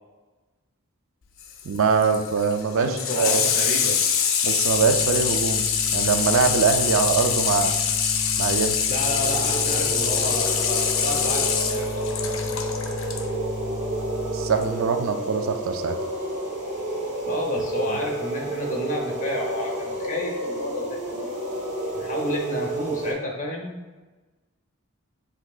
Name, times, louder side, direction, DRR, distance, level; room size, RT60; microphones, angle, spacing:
Water tap faucet / Sink (filling or washing), 1.4-13.2 14.6-14.7, left 7 dB, 65° left, 0.5 m, -24 dB
voice 1, 1.6-3.5 4.4-5.7 5.9-7.7 8.4-8.8 14.3-16.0, right 5 dB, 65° right, 7 dB, 0.4 m, -23 dB
voice 2, 2.8-4.0 8.9-12.6 17.2-21.3 21.9-24.0, left 1 dB, 35° left, 0 dB, 0.9 m, -31 dB
sound 1, 4.7-14.6, left 2 dB, 5° right, 0.5 m, -35 dB
sound 2, 8.9-23.1, right 1 dB, 35° right, 1.1 m, -30 dB
7.9 x 2.7 x 2.4 m, 1.2 s
head